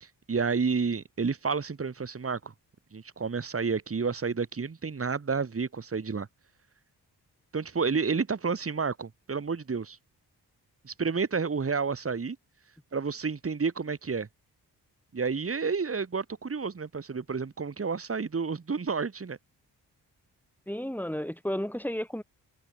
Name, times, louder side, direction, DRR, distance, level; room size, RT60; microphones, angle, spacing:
voice 1, 0.0-2.5 2.9-6.3 7.5-10.0 10.8-12.4 12.9-14.3 15.1-19.4, right 5 dB, 35° right, 1.7 m, -30 dB
voice 2, 20.7-22.2, equal, 5° left, 5.0 m, -32 dB
supercardioid pair, 50°, 40 cm